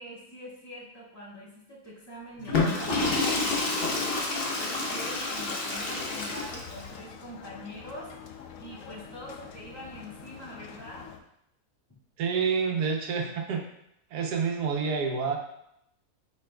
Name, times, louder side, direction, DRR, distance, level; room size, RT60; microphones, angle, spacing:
voice 1, 0.0-3.5 3.9-4.1 4.6-8.1 8.6-11.1, equal, 15° left, -8 dB, 2.0 m, -44 dB
Water / Toilet flush, 2.4-6.9, left 3 dB, 45° left, 1.0 m, -29 dB
sound 1, 5.8-11.2, left 7 dB, 65° left, 0.9 m, -46 dB
voice 2, 12.2-13.6 14.1-15.4, right 5 dB, 90° right, 1 dB, 1.4 m, -28 dB
8.6 x 5.1 x 2.3 m, 0.78 s
omnidirectional pair, 1.7 m